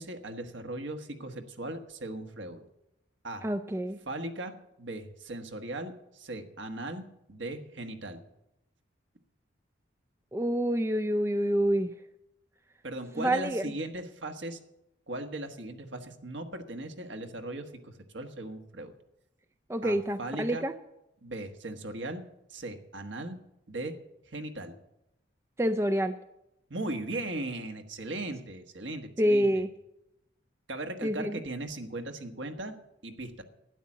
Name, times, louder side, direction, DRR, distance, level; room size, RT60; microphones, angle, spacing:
voice 1, 0.0-2.6 3.2-3.5 4.1-8.2 12.8-14.6 15.1-18.9 19.8-20.6 21.2-22.2 22.5-23.4 23.7-23.9 24.3-24.8 26.7-29.5 30.7-32.8 33.0-33.4, right 2 dB, 65° right, 6 dB, 1.4 m, -38 dB
voice 2, 3.4-4.0 10.3-11.9 13.2-13.6 19.7-20.7 25.6-26.1 29.2-29.7 31.0-31.4, equal, 15° right, 7 dB, 0.4 m, -27 dB
12.5 x 9.9 x 7.3 m, 0.87 s
head